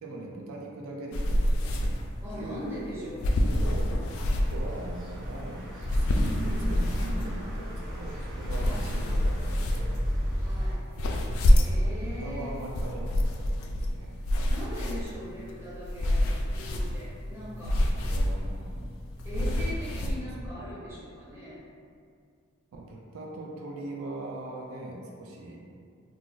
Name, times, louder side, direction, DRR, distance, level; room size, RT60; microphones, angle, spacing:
voice 1, 0.0-1.6 2.2-3.1 3.5-3.9 4.4-6.3 6.6-9.9 11.8-14.1 17.6-18.9 19.8-20.1 20.4-20.8 22.7-25.6, right 2 dB, 75° right, -1 dB, 0.4 m, -41 dB
sound 1, 1.1-20.1, left 1 dB, 70° left, 0.3 m, -28 dB
voice 2, 2.2-3.3 6.2-6.7 7.0-7.2 8.5-8.9 10.3-10.8 11.4-12.6 14.5-17.9 19.2-21.6, equal, 10° right, -10 dB, 0.7 m, -40 dB
sound 2, 4.0-10.7, equal, 55° right, 0.8 m, -35 dB
2.3 x 2.0 x 3.8 m, 2.2 s
head